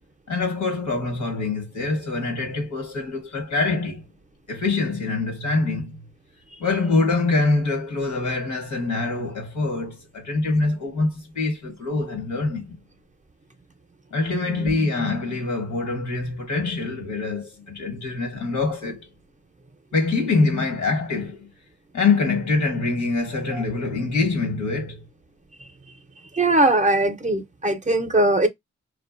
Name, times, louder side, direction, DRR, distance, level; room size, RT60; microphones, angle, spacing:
voice 1, 0.3-4.0 4.5-6.0 6.6-12.8 14.1-19.1 19.9-21.5 21.9-25.0, left 3 dB, 85° left, 1.1 m, -24 dB
voice 2, 14.5-14.9 23.5-23.6 26.3-28.5, right 2 dB, 25° right, 0.5 m, -20 dB
2.5 x 2.2 x 2.4 m
cardioid pair, 50°, 29 cm